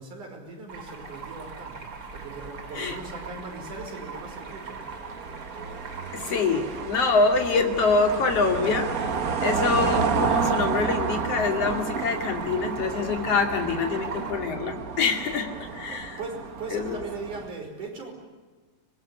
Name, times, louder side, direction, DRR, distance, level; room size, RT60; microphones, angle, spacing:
voice 1, 0.0-4.8 15.5-15.6 15.9-18.1, right 3 dB, 75° right, 2 dB, 6.7 m, -39 dB
Stream, 0.7-14.3, right 4 dB, 35° right, 3.2 m, -42 dB
sound 1, 1.1-17.5, right 5 dB, 60° right, 0.9 m, -31 dB
voice 2, 6.1-9.1 9.4-16.2 16.7-17.0, left 4 dB, 50° left, 4 dB, 3.6 m, -25 dB
24.5 x 21.5 x 9.8 m, 1.4 s
omnidirectional pair, 3.6 m